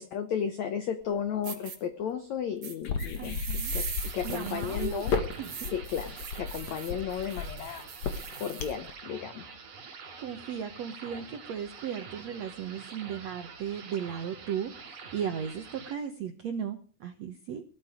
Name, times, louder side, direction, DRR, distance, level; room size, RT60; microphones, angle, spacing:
voice 1, 0.0-5.1 5.7-9.5, left 8 dB, 80° left, 10 dB, 1.6 m, -34 dB
sound 1, 1.0-1.1 1.4-1.8 2.6-8.7, right 6 dB, 40° right, 3.0 m, -41 dB
sound 2, 2.8-8.9, left 5 dB, 50° left, 2.6 m, -33 dB
voice 2, 3.2-3.8 4.2-5.0 5.4-5.7 10.2-17.6, right 8 dB, 75° right, 6 dB, 1.5 m, -36 dB
sound 3, 4.0-15.9, right 5 dB, 55° right, 4.9 m, -47 dB
18.0 x 13.5 x 5.0 m, 0.39 s
omnidirectional pair, 4.7 m